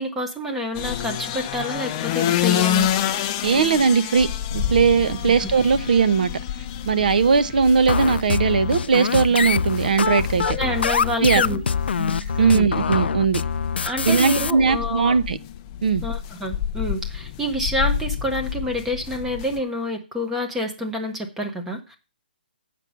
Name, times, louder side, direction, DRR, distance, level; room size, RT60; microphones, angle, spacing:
voice 1, 0.0-2.9 5.4-5.5 10.4-11.6 12.4-12.7 13.8-15.2 16.0-22.0, equal, 5° right, 0.8 m, -28 dB
sound 1, 0.7-19.6, left 10 dB, 20° left, 0.5 m, -29 dB
voice 2, 3.4-6.3 6.9-10.6 11.2-11.4 12.4-13.4 14.0-15.4 15.8-16.0, right 5 dB, 50° right, 0.8 m, -19 dB
sound 2, 4.5-8.2 8.5-11.2 11.5-12.5, right 1 dB, 75° right, 6.4 m, -42 dB
sound 3, 7.9-14.5, left 6 dB, 80° left, 0.4 m, -24 dB
7.6 x 6.1 x 6.9 m
hypercardioid pair, 175°, 6 cm